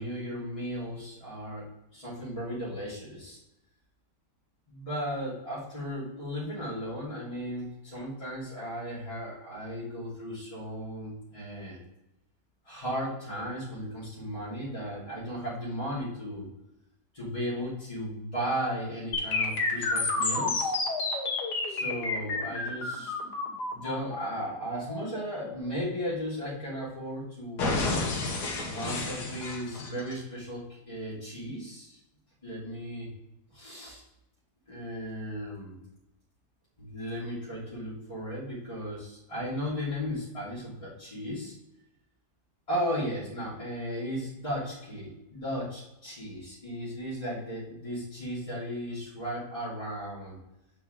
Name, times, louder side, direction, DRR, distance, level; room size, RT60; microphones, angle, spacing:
voice 1, 0.0-1.6 1.9-3.4 4.7-11.8 12.6-16.5 17.1-20.7 21.7-23.1 23.7-27.9 28.6-32.0 32.4-33.1 33.5-34.0 34.7-35.8 36.8-41.5 42.7-50.4, equal, 20° left, -11 dB, 2.7 m, -35 dB
sound 1, 19.1-27.1 27.6-30.1, left 3 dB, 75° left, 1.8 m, -31 dB
7.4 x 4.5 x 3.8 m, 0.90 s
omnidirectional pair, 1.7 m